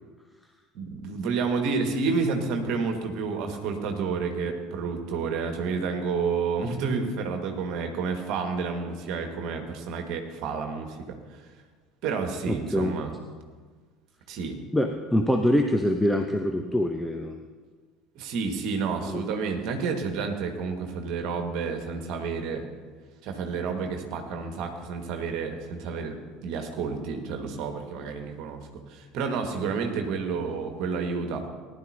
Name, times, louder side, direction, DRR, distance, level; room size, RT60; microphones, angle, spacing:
voice 1, 0.7-11.2 12.0-13.1 14.3-14.6 18.2-22.7 23.2-31.5, right 5 dB, 50° right, 5 dB, 1.8 m, -30 dB
voice 2, 12.5-12.9 14.7-17.4 19.0-19.2, equal, 5° left, 4 dB, 0.9 m, -24 dB
19.0 x 11.5 x 2.9 m, 1.4 s
figure-of-eight pair, 65°, 0 cm